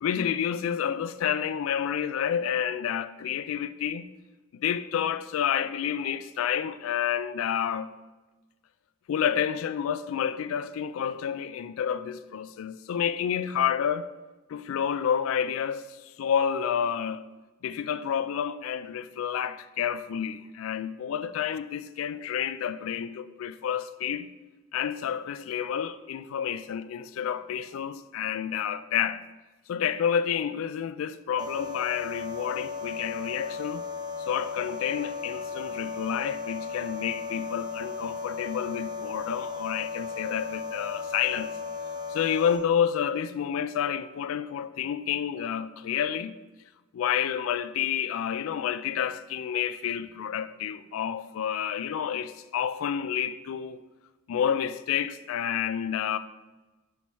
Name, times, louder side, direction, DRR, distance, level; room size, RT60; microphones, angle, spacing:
voice 1, 0.0-4.1 4.5-7.9 9.1-14.1 14.5-17.2 17.6-24.3 24.7-29.2 29.7-33.8 34.3-41.5 42.1-46.3 46.9-53.8 54.3-56.2, left 8 dB, 75° left, 0.3 m, -29 dB
sound 1, 31.4-42.6, left 4 dB, 20° right, 0.5 m, -36 dB
6.1 x 4.6 x 4.1 m
head